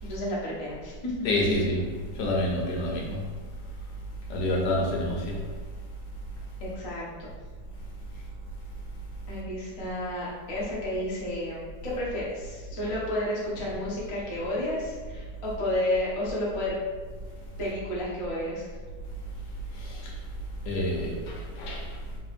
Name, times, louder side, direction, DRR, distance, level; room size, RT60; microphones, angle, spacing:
voice 1, 0.0-1.1 6.6-7.3 8.1-8.2 9.3-16.8 17.6-18.7, left 1 dB, 45° left, -6 dB, 0.4 m, -31 dB
voice 2, 1.2-1.8 2.2-3.2 4.3-5.4 19.8-20.1 20.7-21.9, left 1 dB, 80° left, -2 dB, 1.4 m, -28 dB
4.1 x 2.7 x 2.5 m, 1.5 s
omnidirectional pair, 1.9 m